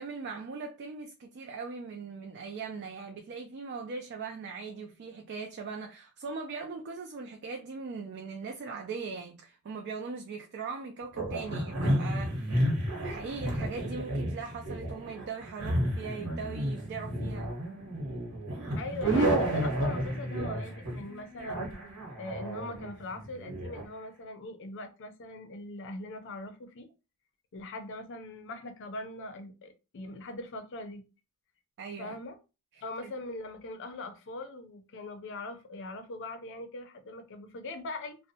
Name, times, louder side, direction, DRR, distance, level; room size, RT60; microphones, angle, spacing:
voice 1, 0.0-12.7 13.0-17.5 31.8-32.2 32.7-33.1, right 4 dB, 50° right, 0.4 m, -40 dB
sound 1, 11.1-23.8, right 1 dB, 90° right, 1.0 m, -31 dB
voice 2, 18.8-21.7 22.2-26.9 27.5-31.0 32.0-32.4 32.8-38.2, left 2 dB, 55° left, 0.5 m, -41 dB
2.6 x 2.1 x 2.7 m
head